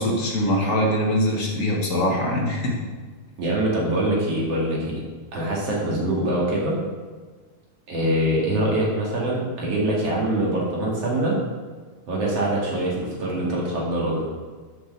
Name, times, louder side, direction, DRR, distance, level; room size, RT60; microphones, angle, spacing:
voice 1, 0.0-2.8, equal, 40° left, -2 dB, 1.3 m, -22 dB
voice 2, 3.4-5.0 5.3-6.8 7.9-11.4 12.1-14.2, right 1 dB, 55° right, -4 dB, 3.1 m, -24 dB
7.6 x 6.6 x 6.6 m, 1.4 s
omnidirectional pair, 3.4 m